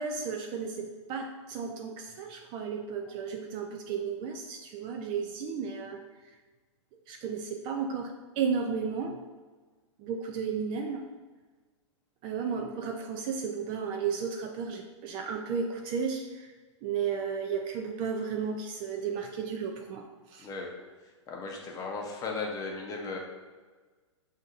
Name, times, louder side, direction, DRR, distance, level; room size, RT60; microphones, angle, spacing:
voice 1, 0.0-6.0 7.1-9.1 10.0-11.0 12.2-16.5 16.8-20.0 20.3-20.5, right 6 dB, 30° right, 3 dB, 0.3 m, -33 dB
voice 2, 20.4-20.7 21.3-23.2, left 4 dB, 20° left, 0 dB, 0.7 m, -36 dB
6.3 x 2.7 x 2.4 m, 1.4 s
hypercardioid pair, 125°, 16 cm